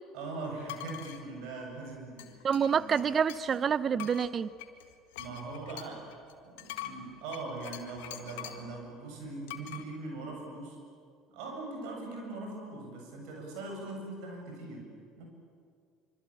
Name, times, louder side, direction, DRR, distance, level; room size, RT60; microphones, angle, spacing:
voice 1, 0.1-2.4 2.7-2.9 5.2-6.1 6.4-10.8 11.3-15.3, right 3 dB, 65° right, 2 dB, 7.9 m, -41 dB
sound 1, 0.6-1.2 2.2-3.6 4.0-8.7 9.5-9.8, left 13 dB, 75° left, 1.9 m, -44 dB
voice 2, 2.4-4.5, right 7 dB, 40° right, 17 dB, 0.8 m, -27 dB
26.0 x 25.0 x 8.9 m, 2.2 s
hypercardioid pair, 70°, 0 cm